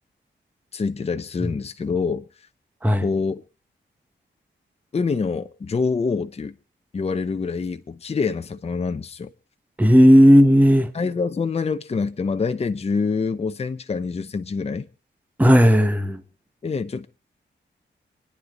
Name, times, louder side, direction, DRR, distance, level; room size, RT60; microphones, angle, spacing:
voice 1, 0.7-2.3 3.0-3.4 4.9-6.5 6.9-9.3 10.9-14.9 16.6-17.1, left 4 dB, 30° left, 0.8 m, -26 dB
voice 2, 9.8-10.9 15.4-16.2, equal, 10° right, 1.3 m, -13 dB
27.5 x 9.9 x 3.9 m
wide cardioid pair, 155°, 19 cm